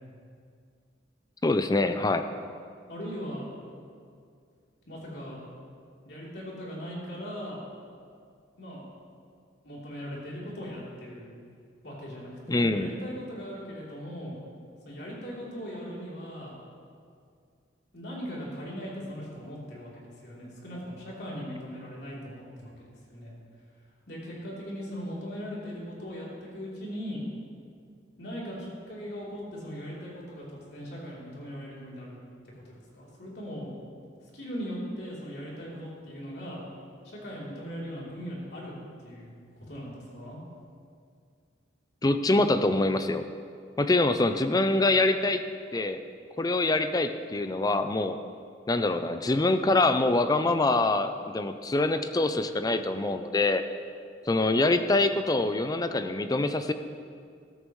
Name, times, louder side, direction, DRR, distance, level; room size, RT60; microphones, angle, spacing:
voice 1, 1.4-2.3 12.5-12.9 42.0-43.2 43.8-45.4 45.7-46.0 46.4-48.2 48.7-53.6 54.3-56.7, left 2 dB, 20° left, 9 dB, 0.4 m, -25 dB
voice 2, 2.9-3.5 4.9-5.4 6.0-7.6 8.6-8.8 9.6-11.3 11.8-14.4 14.8-16.5 17.9-23.3 24.1-27.2 28.2-32.2 32.6-33.7 34.3-36.6 37.0-38.7 39.0-40.4, equal, 60° left, -5 dB, 3.4 m, -39 dB
14.0 x 13.0 x 3.2 m, 2.3 s
head